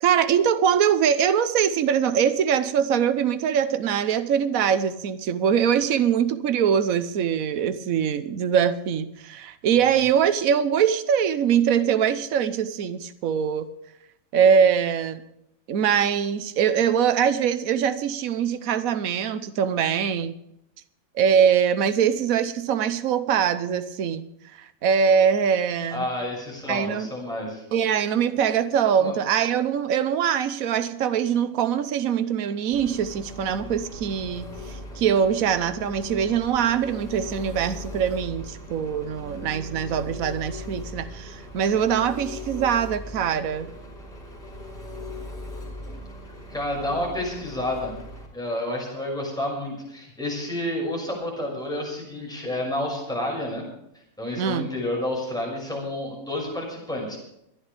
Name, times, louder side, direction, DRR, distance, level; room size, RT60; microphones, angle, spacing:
voice 1, 0.0-13.7 14.3-15.2 15.7-20.3 21.1-24.3 24.6-26.1 26.7-27.1 27.7-43.7 54.4-54.7, right 8 dB, 75° right, 12 dB, 1.3 m, -23 dB
voice 2, 25.9-27.6 29.0-29.1 46.5-47.9 48.3-53.6 54.2-57.2, left 1 dB, 5° left, -3 dB, 6.2 m, -30 dB
Engine, 32.7-48.3, left 1 dB, 50° left, 4.5 m, -39 dB
26.0 x 11.0 x 3.5 m, 0.79 s
omnidirectional pair, 1.5 m